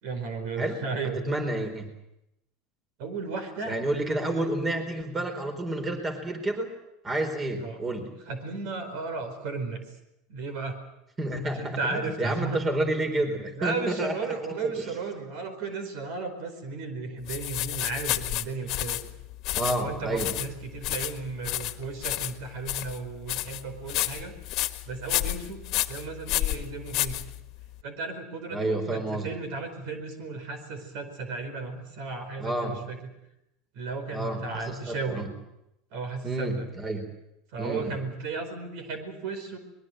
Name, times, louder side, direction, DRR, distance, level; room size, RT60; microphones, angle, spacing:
voice 1, 0.0-1.3 3.0-3.8 4.1-4.5 7.6-7.8 8.3-9.8 10.3-10.7 11.6-12.6 13.6-19.0 19.6-24.3 24.8-27.2 27.8-33.0 33.7-35.3 35.9-36.7 37.5-39.6, right 4 dB, 70° right, 9 dB, 4.8 m, -34 dB
voice 2, 1.2-1.9 3.7-6.7 7.0-8.2 11.2-14.2 14.7-14.9 19.6-20.3 28.5-29.4 32.4-32.8 34.1-35.3 36.2-37.1 37.6-38.0, right 1 dB, 25° right, 7 dB, 4.4 m, -30 dB
Salt shake, 17.3-27.7, left 17 dB, 55° left, 1.5 m, -31 dB
23.0 x 21.5 x 7.9 m, 0.86 s
supercardioid pair, 105°, 0 cm